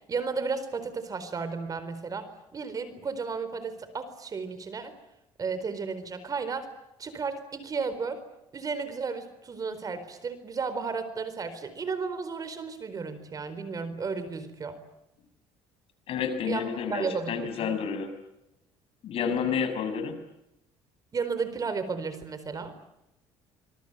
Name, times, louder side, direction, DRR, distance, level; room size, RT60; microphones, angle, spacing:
voice 1, 0.1-4.9 5.4-6.7 7.0-8.2 8.5-14.8 16.4-17.7 21.1-22.7, right 5 dB, 35° right, 12 dB, 4.4 m, -33 dB
voice 2, 16.1-18.1 19.0-20.2, left 7 dB, 60° left, 8 dB, 6.4 m, -30 dB
26.0 x 23.0 x 9.2 m, 0.89 s
cardioid pair, 110°, 11 cm